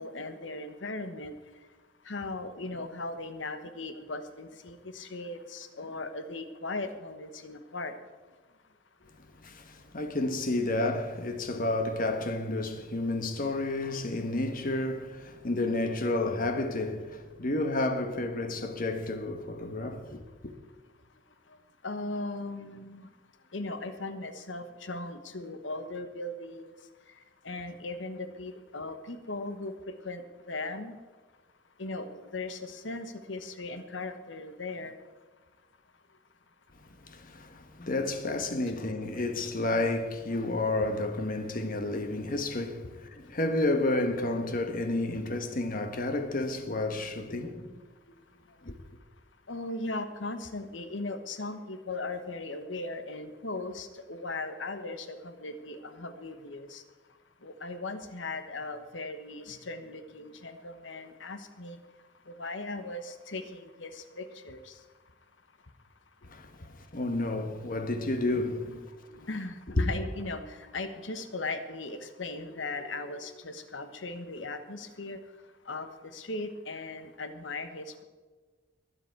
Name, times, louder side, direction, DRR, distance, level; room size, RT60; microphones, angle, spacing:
voice 1, 0.0-1.3 2.1-7.9 16.4-16.5 21.8-23.1 23.5-26.7 27.4-29.7 30.0-31.0 31.8-34.9 49.5-56.8 57.4-61.8 62.3-64.7 68.6-68.8 69.1-75.2 75.7-78.0, left 2 dB, 70° left, 1.2 m, -38 dB
voice 2, 9.4-20.5 37.1-47.8 48.6-48.7 66.3-68.8 69.7-69.8, left 2 dB, 50° left, 1.2 m, -31 dB
22.5 x 8.1 x 4.7 m
head